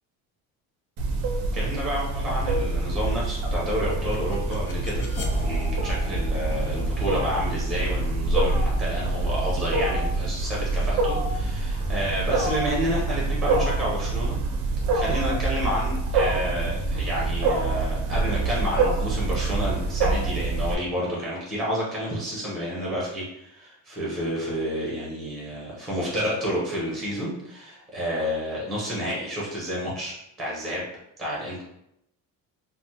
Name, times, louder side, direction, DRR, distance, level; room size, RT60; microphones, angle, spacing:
Wild animals, 1.0-20.7, right 3 dB, 50° right, 0.4 m, -26 dB
voice 1, 1.5-5.1 5.4-14.4 14.9-30.8 31.2-31.6, equal, ahead, -5 dB, 0.7 m, -30 dB
sound 1, 3.9-12.6, equal, 70° left, 0.7 m, -36 dB
3.3 x 2.0 x 2.8 m, 0.78 s
cardioid pair, 175°, 36 cm